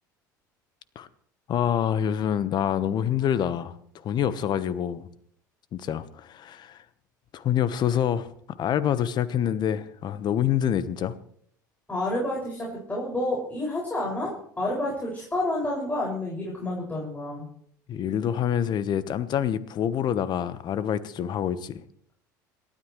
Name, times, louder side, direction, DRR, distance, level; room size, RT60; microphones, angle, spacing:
voice 1, 1.5-5.1 5.7-6.8 7.3-8.3 8.6-11.1 17.9-21.8, left 9 dB, 45° left, 15 dB, 1.2 m, -26 dB
voice 2, 11.9-17.5, left 1 dB, 15° left, -4 dB, 6.2 m, -29 dB
27.5 x 13.0 x 3.3 m, 0.65 s
figure-of-eight pair, 65°, 10 cm